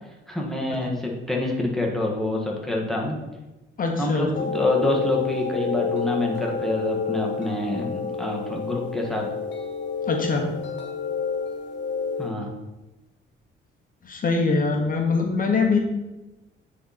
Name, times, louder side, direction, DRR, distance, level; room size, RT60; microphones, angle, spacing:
voice 1, 0.3-3.2 4.0-9.3 12.2-12.5, left 1 dB, ahead, -1 dB, 1.6 m, -26 dB
voice 2, 3.8-4.3 10.1-10.5 14.0-15.8, left 4 dB, 45° left, 2 dB, 1.2 m, -23 dB
sound 1, 4.3-12.3, left 5 dB, 65° left, 1.4 m, -29 dB
9.2 x 4.3 x 4.2 m, 1.1 s
cardioid pair, 90°, 20 cm